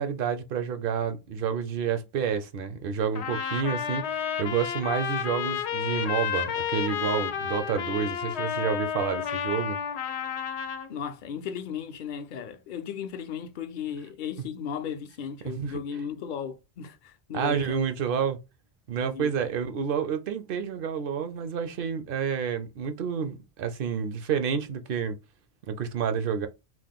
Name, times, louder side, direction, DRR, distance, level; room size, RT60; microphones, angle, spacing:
voice 1, 0.0-9.8 15.4-15.8 17.3-18.4 18.9-25.2 25.7-26.5, right 7 dB, 65° right, 0.7 m, -29 dB
Trumpet, 3.2-10.9, left 8 dB, 90° left, 0.8 m, -31 dB
voice 2, 10.9-17.9 19.0-19.5, left 7 dB, 60° left, 0.6 m, -36 dB
3.0 x 2.0 x 3.5 m
omnidirectional pair, 1.1 m